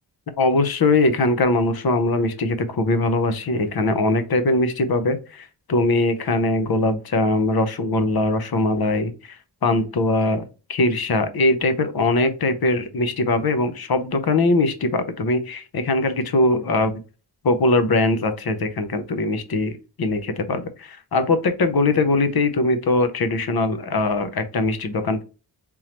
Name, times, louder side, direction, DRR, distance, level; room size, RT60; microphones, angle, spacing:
voice 1, 0.4-10.4 10.7-16.9 17.4-19.7 20.0-25.2, left 2 dB, 60° left, 9 dB, 0.8 m, -21 dB
3.6 x 2.9 x 3.0 m, 0.32 s
wide cardioid pair, 70°, 43 cm